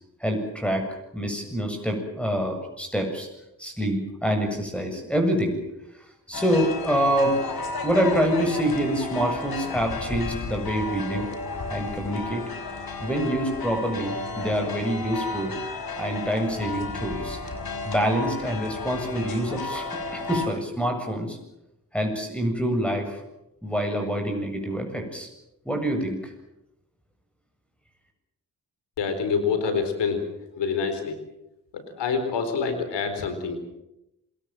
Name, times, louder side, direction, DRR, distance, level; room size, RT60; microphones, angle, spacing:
voice 1, 0.2-0.9 1.1-3.3 3.6-5.6 6.3-7.4 7.8-11.3 11.7-12.4 13.0-15.5 16.0-17.4 17.8-21.4 21.9-23.2 23.6-25.3 25.7-26.3, equal, 5° left, 4 dB, 7.7 m, -26 dB
sound 1, 6.3-20.5, left 3 dB, 60° left, 5.2 m, -33 dB
voice 2, 29.0-30.2 30.6-31.1 31.7-33.6, left 5 dB, 80° left, 9 dB, 4.2 m, -26 dB
27.5 x 20.0 x 7.6 m, 0.88 s
supercardioid pair, 45°, 41 cm